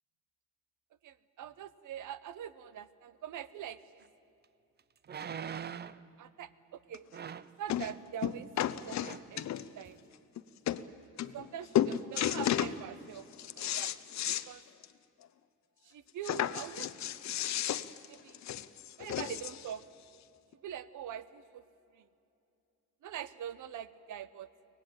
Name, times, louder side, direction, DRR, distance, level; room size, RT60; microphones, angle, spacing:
voice 1, 1.0-4.1 6.2-7.1 7.6-8.5 8.8-9.5 9.8-10.0 11.3-13.3 13.5-13.9 14.5-14.6 15.8-16.9 17.3-17.5 18.1-18.4 19.0-19.8 20.6-21.6 21.9-22.1 23.0-24.5, right 10 dB, 65° right, 15 dB, 1.0 m, -43 dB
sound 1, 4.0-4.1 5.0-6.1 7.1-7.6 8.5-8.7 9.0-9.3 9.9-10.0, right 8 dB, 30° right, 0.6 m, -42 dB
sound 2, 6.9-7.0 7.7-7.9 8.2-9.8 10.4-10.5 10.7-10.8 11.2-11.5 11.7-12.8 13.2-14.5 14.8-14.9 15.2-15.3 16.2-19.7 20.5-20.6, left 11 dB, 55° left, 0.8 m, -33 dB
24.0 x 18.5 x 8.9 m, 2.8 s
cardioid pair, 120°, 33 cm